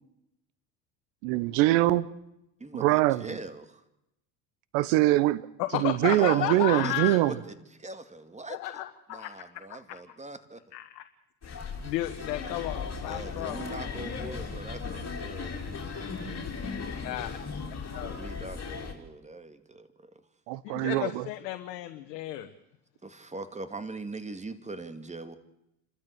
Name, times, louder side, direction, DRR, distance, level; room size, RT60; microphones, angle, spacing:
voice 1, 1.2-2.1 2.7-3.4 4.7-5.5 5.7-7.3 20.5-21.3, right 16 dB, 70° right, 1.2 m, -23 dB
voice 2, 2.6-3.6 6.2-8.8 9.1-10.6 13.0-17.3 18.0-20.1 23.0-25.3, right 2 dB, 15° right, 2.2 m, -42 dB
voice 3, 5.6-7.2 8.5-9.8 10.7-11.0 11.4-13.8 17.0-17.4 17.9-18.2 20.6-22.5, left 14 dB, 75° left, 1.4 m, -33 dB
sound 1, 11.4-18.9, left 5 dB, 30° left, 4.9 m, -37 dB
28.5 x 13.0 x 8.1 m
hypercardioid pair, 75°, 48 cm